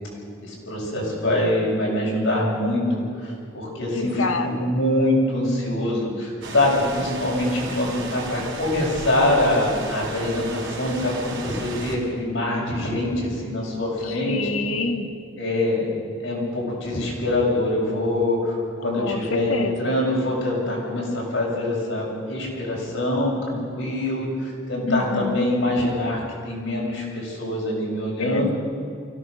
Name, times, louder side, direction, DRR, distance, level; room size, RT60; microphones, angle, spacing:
voice 1, 0.4-14.4 15.4-15.9 16.2-28.5, left 1 dB, 70° left, -3 dB, 7.5 m, -24 dB
voice 2, 3.9-4.7 14.0-15.1 19.0-20.0 24.8-25.5 28.2-28.5, left 3 dB, 90° left, 6 dB, 1.8 m, -27 dB
sound 1, 6.4-12.0, right 3 dB, 60° right, 3.9 m, -35 dB
24.5 x 17.0 x 6.6 m, 2.5 s
head